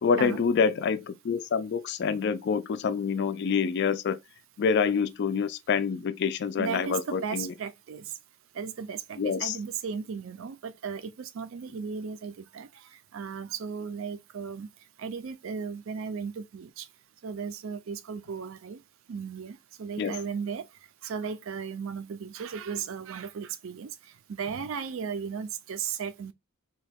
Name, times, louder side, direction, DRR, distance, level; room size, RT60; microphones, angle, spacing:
voice 1, 0.0-4.2 4.6-7.5 9.2-9.6 20.0-20.2, left 6 dB, 50° left, 0.3 m, -27 dB
voice 2, 6.6-8.1 8.5-12.7 13.1-14.7 15.0-16.9 17.2-18.8 19.1-20.6 21.0-23.9 24.3-26.3, right 6 dB, 65° right, 0.4 m, -35 dB
2.8 x 2.3 x 3.3 m
head